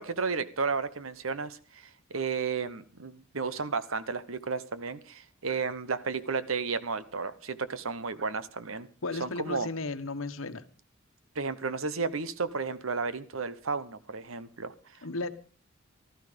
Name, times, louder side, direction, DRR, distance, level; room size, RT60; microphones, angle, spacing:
voice 1, 0.0-8.9 9.2-9.7 11.3-14.7, right 4 dB, 75° right, 14 dB, 1.1 m, -33 dB
voice 2, 9.0-10.6 15.0-15.3, left 3 dB, 70° left, 11 dB, 1.2 m, -34 dB
15.5 x 13.0 x 5.1 m, 0.39 s
head